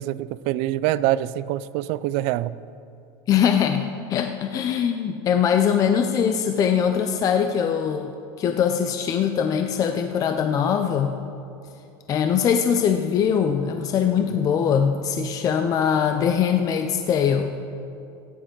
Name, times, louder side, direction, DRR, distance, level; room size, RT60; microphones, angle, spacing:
voice 1, 0.0-2.6 14.2-14.3, right 14 dB, 60° right, 17 dB, 0.4 m, -25 dB
voice 2, 3.3-8.1 8.4-11.2 12.1-17.6, left 8 dB, 30° left, 6 dB, 0.5 m, -22 dB
15.5 x 9.8 x 3.8 m, 2.6 s
supercardioid pair, 150°, 12 cm